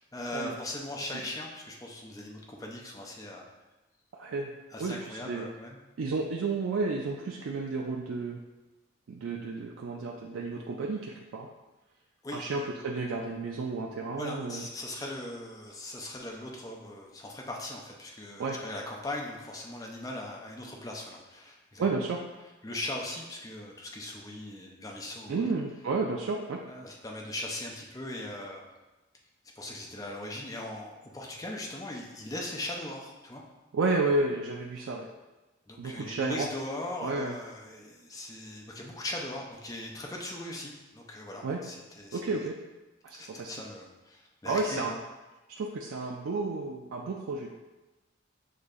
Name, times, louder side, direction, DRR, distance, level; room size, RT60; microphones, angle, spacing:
voice 1, 0.1-3.4 4.7-5.8 12.2-12.5 14.2-21.8 22.6-25.4 26.7-28.7 29.6-33.4 35.7-42.4 43.2-44.8, left 1 dB, 20° left, -1 dB, 0.5 m, -39 dB
voice 2, 4.2-4.5 4.8-5.5 6.0-8.4 9.1-11.5 12.3-14.7 18.4-18.6 21.8-22.2 25.3-26.6 33.7-35.1 35.8-36.5 37.0-37.3 41.4-41.6 42.1-42.6 43.0-43.5 44.5-45.0 45.5-47.5, right 3 dB, 85° right, 0 dB, 0.4 m, -31 dB
6.4 x 2.6 x 2.5 m, 1.1 s
head